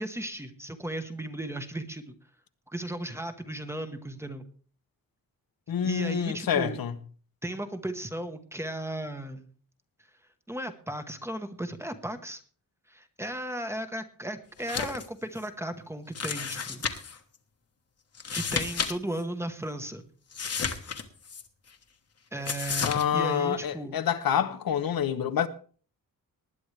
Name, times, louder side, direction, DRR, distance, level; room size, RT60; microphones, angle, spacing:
voice 1, 0.0-2.1 2.7-4.4 5.8-6.8 7.4-9.5 10.5-12.4 12.9-16.8 18.3-20.1 22.3-24.0, right 1 dB, 5° right, 1.1 m, -35 dB
voice 2, 5.7-6.9 22.8-25.5, left 8 dB, 80° left, 1.0 m, -27 dB
sound 1, 14.6-15.1 15.4-15.5 16.1-17.2 18.1-18.9 19.2-19.3 20.3-21.4 22.4-23.0, left 6 dB, 45° left, 1.2 m, -32 dB
19.5 x 10.5 x 3.3 m
wide cardioid pair, 165°, 35 cm